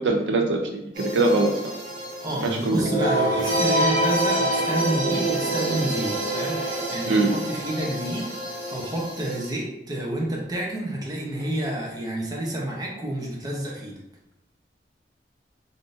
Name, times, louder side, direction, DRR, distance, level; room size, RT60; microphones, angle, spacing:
voice 1, 0.0-1.5 2.4-3.0 7.1-7.3, right 2 dB, 85° right, 3 dB, 0.5 m, -22 dB
sound 1, 1.0-9.5, right 1 dB, 55° right, 1.2 m, -26 dB
voice 2, 2.2-14.0, right 1 dB, 20° right, -3 dB, 0.7 m, -29 dB
3.6 x 2.6 x 2.5 m, 0.85 s
head